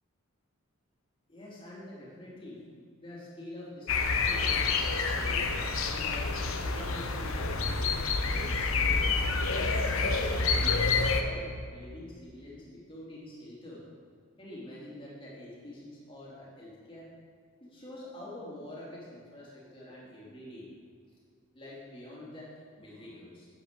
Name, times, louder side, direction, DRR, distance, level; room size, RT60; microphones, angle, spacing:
voice 1, 1.3-2.7 3.0-4.7 5.1-5.5 5.8-8.0 8.3-13.8 14.4-17.1 17.6-20.7 21.5-22.5 22.8-23.5, left 1 dB, 25° left, -6 dB, 3.1 m, -46 dB
sound 1, 3.9-11.2, left 4 dB, 70° left, 1.0 m, -28 dB
12.0 x 9.0 x 5.3 m, 2.1 s
head